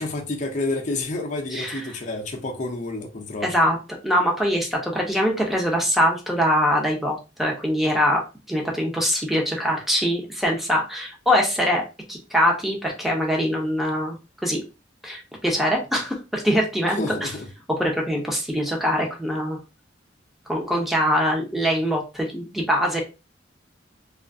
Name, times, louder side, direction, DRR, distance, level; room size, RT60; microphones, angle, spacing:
voice 1, 0.0-3.5 17.0-17.5, left 2 dB, 40° left, 0.6 m, -29 dB
voice 2, 1.5-1.8 3.4-3.8 4.0-8.2 8.5-11.8 12.1-14.2 14.4-14.6 15.0-17.3 17.8-19.6 20.5-23.0, equal, ahead, 0.6 m, -23 dB
2.7 x 2.4 x 2.5 m
head